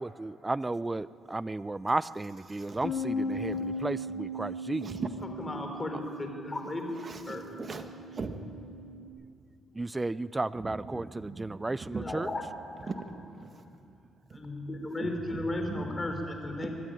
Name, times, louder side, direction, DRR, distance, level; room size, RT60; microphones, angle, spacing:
voice 1, 0.0-4.9 9.8-12.3, right 2 dB, 20° right, 18 dB, 0.4 m, -33 dB
voice 2, 2.5-2.9 3.3-3.8 4.8-5.3 7.0-7.9 8.1-8.4 10.3-12.1 12.9-13.0 13.4-13.6 14.3-14.4 15.0-16.0, right 4 dB, 40° right, 6 dB, 1.8 m, -40 dB
Bass guitar, 2.8-9.1, left 1 dB, 75° left, 3.1 m, -38 dB
voice 3, 5.2-6.8 7.3-7.4 11.9-12.4 14.3-16.7, left 2 dB, 25° left, 4 dB, 3.9 m, -35 dB
23.5 x 13.0 x 9.1 m, 2.6 s
cardioid pair, 90°, 0 cm